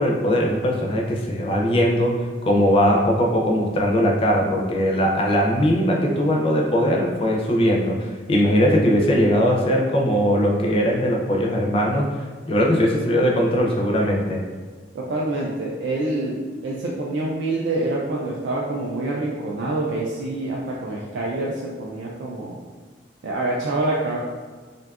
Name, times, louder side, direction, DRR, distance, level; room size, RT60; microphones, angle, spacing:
voice 1, 0.0-2.1 2.4-12.1 12.5-14.4, equal, 30° left, -1 dB, 0.3 m, -20 dB
voice 2, 14.9-22.6 23.2-24.2, right 2 dB, 75° right, -3 dB, 0.3 m, -26 dB
2.6 x 2.3 x 2.3 m, 1.4 s
head